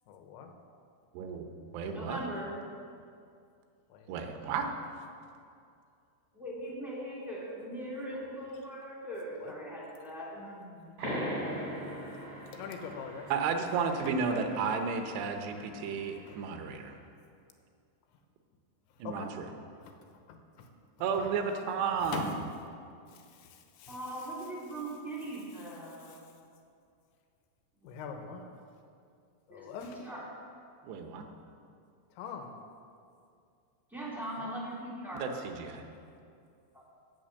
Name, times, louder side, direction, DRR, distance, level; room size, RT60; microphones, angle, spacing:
voice 1, 0.1-0.5 3.9-4.1 4.5-4.6 8.1-8.4 9.4-9.5 12.5-13.3 14.0-14.4 16.3-16.4 19.0-19.3 19.8-19.9 20.3-20.7 21.2-21.3 22.0-22.5 23.1-24.0 26.1-26.2 27.8-28.5 29.5-30.0 32.2-32.5 34.4-34.6, left 6 dB, 75° left, 4 dB, 3.1 m, -43 dB
voice 2, 1.1-1.5 1.7-2.2 4.1-4.7 13.3-16.9 19.0-19.5 21.0-22.4 30.8-31.2 35.1-35.8, right 5 dB, 75° right, 5 dB, 2.9 m, -33 dB
voice 3, 1.7-2.5 6.3-10.9 23.9-26.4 27.8-28.1 29.5-30.2 33.9-35.3 36.7-36.8, right 1 dB, ahead, -7 dB, 1.2 m, -41 dB
sound 1, 11.0-16.2, equal, 50° right, 4.0 m, -40 dB
16.5 x 6.9 x 6.5 m, 2.4 s
omnidirectional pair, 5.5 m